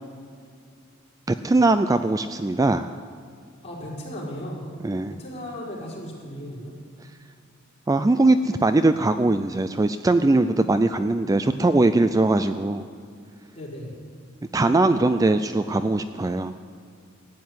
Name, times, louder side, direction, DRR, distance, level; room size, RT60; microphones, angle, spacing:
voice 1, 1.4-2.9 4.8-5.2 7.9-12.9 14.5-16.5, right 2 dB, 15° right, 10 dB, 0.3 m, -21 dB
voice 2, 3.6-4.7 5.1-6.7 13.5-13.9, equal, 30° left, -5 dB, 4.9 m, -36 dB
15.5 x 9.3 x 9.5 m, 2.3 s
head